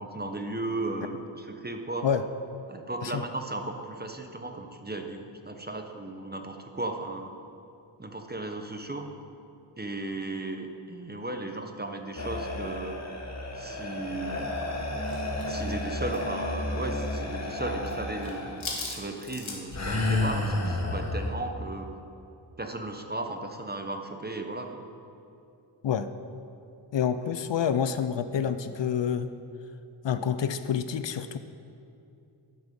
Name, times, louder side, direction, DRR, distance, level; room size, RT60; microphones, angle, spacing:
voice 1, 0.0-2.1 2.7-7.3 8.0-9.1 9.8-13.0 13.5-14.5 15.5-22.0 22.6-24.8, right 2 dB, 20° right, 5 dB, 0.8 m, -35 dB
sound 1, 12.2-18.7 19.7-21.3, left 2 dB, 35° left, 1.2 m, -31 dB
sound 2, 15.0-17.2 17.5-17.9 18.2-19.9, left 3 dB, 90° left, 1.5 m, -40 dB
voice 2, 26.9-29.3 30.0-31.4, left 8 dB, 70° left, 11 dB, 0.5 m, -28 dB
11.5 x 6.0 x 5.3 m, 2.6 s
wide cardioid pair, 70°, 46 cm